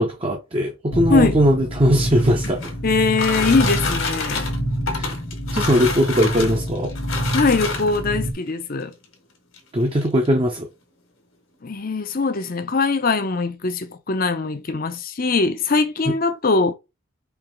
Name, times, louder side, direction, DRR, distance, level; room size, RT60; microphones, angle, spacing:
voice 1, 0.0-2.7 4.9-5.1 5.5-6.9 9.7-10.7 16.1-16.2, equal, 25° right, 0.6 m, -20 dB
sound 1, 0.9-8.3, equal, 85° left, 1.3 m, -27 dB
sound 2, 1.9-8.2 9.0-9.1 9.5-9.6 9.9-10.3, left 4 dB, 65° left, 1.5 m, -28 dB
voice 2, 2.8-4.5 7.3-8.9 11.6-16.7, left 3 dB, 40° left, 0.6 m, -21 dB
4.6 x 3.0 x 3.6 m
head